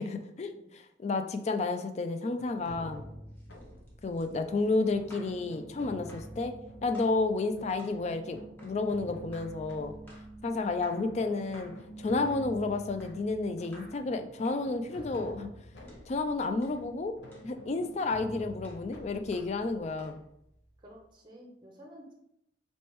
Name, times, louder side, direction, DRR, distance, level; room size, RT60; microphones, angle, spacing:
voice 1, 0.0-3.1 4.0-6.5 6.8-9.9 10.4-11.7 12.0-15.5 16.1-17.2 17.4-20.2, left 3 dB, 35° left, 7 dB, 0.3 m, -31 dB
sound 1, 2.4-21.1, equal, 65° left, 0.7 m, -49 dB
sound 2, 3.3-5.4 6.1-6.4 6.9-7.2 7.8-8.0 8.6-8.8 9.3-9.6 10.1-10.3 10.8-11.1 11.5-11.9 12.2-12.5 13.0-13.3 13.7-14.0 14.4-14.7 15.1-15.3 15.9-16.1 16.6-16.8 17.3-17.5 18.0-18.2 18.6-18.9 19.3-19.6 20.0-20.2, equal, 10° left, 1.0 m, -56 dB
sound 3, 4.9-14.0, right 2 dB, 80° right, 0.4 m, -50 dB
voice 2, 14.9-15.3 20.8-22.1, equal, 25° right, -1 dB, 0.6 m, -52 dB
4.2 x 3.2 x 3.1 m, 0.79 s
head